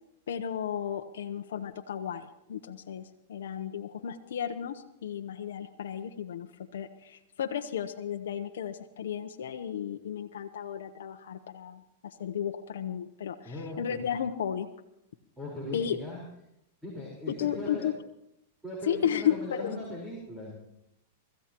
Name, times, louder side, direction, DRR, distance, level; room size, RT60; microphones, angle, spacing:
voice 1, 0.3-14.7 15.7-16.0 17.3-17.9 18.8-19.8, left 9 dB, 80° left, 5 dB, 0.9 m, -34 dB
voice 2, 13.4-14.1 15.4-16.2 16.8-17.9 18.6-20.6, left 1 dB, 5° right, -4 dB, 4.5 m, -39 dB
24.5 x 14.5 x 3.0 m, 0.82 s
hypercardioid pair, 135°, 0 cm